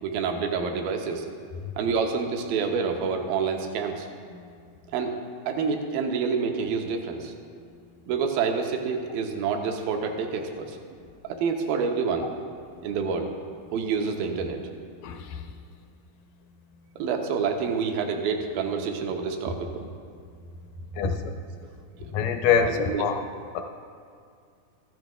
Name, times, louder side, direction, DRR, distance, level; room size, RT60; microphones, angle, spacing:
voice 1, 0.0-1.3 1.8-4.1 4.9-5.1 5.5-7.3 8.1-10.8 11.2-12.3 12.8-13.3 13.7-14.6 17.0-19.8 22.0-22.1 22.5-23.1, right 5 dB, 80° right, 4 dB, 2.5 m, -28 dB
voice 2, 15.0-15.4 21.0-21.2 22.1-23.2 23.5-23.6, left 7 dB, 80° left, 5 dB, 2.0 m, -25 dB
14.5 x 12.5 x 2.3 m, 2.3 s
omnidirectional pair, 4.2 m